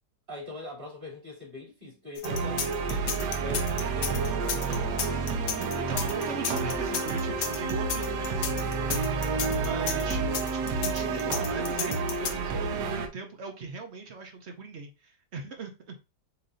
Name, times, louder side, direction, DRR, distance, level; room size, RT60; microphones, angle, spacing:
voice 1, 0.3-4.9 9.8-10.5, left 3 dB, 30° right, 2.9 m, -43 dB
sound 1, 2.2-12.3, left 8 dB, 80° left, 1.2 m, -33 dB
sound 2, 2.2-13.1, right 4 dB, 80° right, 1.3 m, -29 dB
voice 2, 5.7-8.8 9.6-10.2 10.5-16.0, right 5 dB, 55° right, 0.9 m, -40 dB
7.2 x 2.7 x 2.6 m
omnidirectional pair, 1.8 m